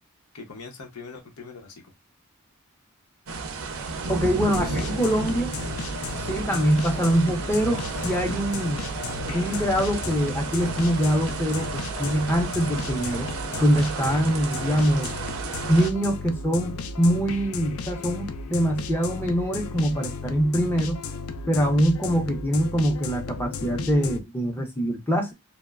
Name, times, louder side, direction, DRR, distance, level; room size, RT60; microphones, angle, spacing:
voice 1, 0.3-1.9 4.3-4.8, left 4 dB, 85° left, 0.8 m, -42 dB
sound 1, 3.3-15.9, right 4 dB, 65° right, 0.4 m, -33 dB
voice 2, 4.1-5.5 6.2-8.8 9.3-13.3 13.6-15.1 15.7-21.0 21.5-25.3, equal, 10° left, 0.5 m, -24 dB
sound 2, 4.4-24.2, left 4 dB, 65° left, 0.4 m, -35 dB
3.0 x 2.1 x 2.3 m
head